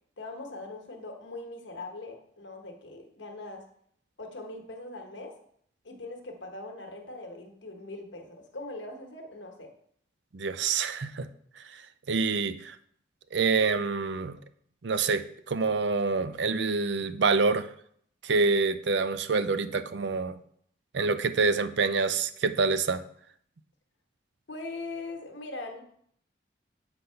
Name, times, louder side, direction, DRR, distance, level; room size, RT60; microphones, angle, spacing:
voice 1, 0.2-3.7 4.2-5.3 5.8-9.7 24.5-25.8, left 2 dB, 80° left, 3 dB, 1.2 m, -41 dB
voice 2, 10.3-11.3 11.7-11.8 12.1-12.8 13.3-14.4 14.8-17.7 18.2-20.4 20.9-23.0, right 4 dB, 70° right, 12 dB, 0.5 m, -26 dB
7.8 x 4.0 x 5.6 m, 0.65 s
head